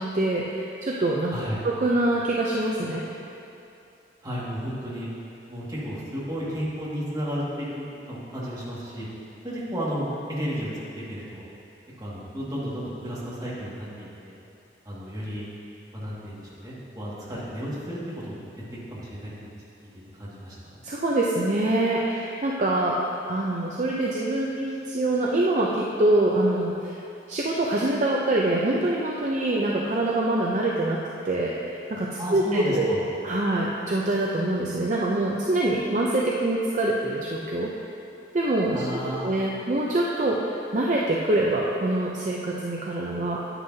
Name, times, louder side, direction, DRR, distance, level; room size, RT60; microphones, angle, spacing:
voice 1, 0.0-1.4 1.6-3.0 20.8-23.0 23.3-27.0 27.3-31.0 31.2-32.9 33.2-37.7 38.3-38.8 39.2-43.4, right 1 dB, 45° right, -3 dB, 0.6 m, -25 dB
voice 2, 1.3-1.6 4.2-5.1 5.5-9.1 9.4-10.7 10.9-11.4 12.0-14.3 14.8-15.4 15.9-18.5 18.9-19.5 20.1-20.8 32.2-33.0 38.7-39.3, equal, 20° right, -8 dB, 2.0 m, -33 dB
9.9 x 9.6 x 2.8 m, 2.7 s
head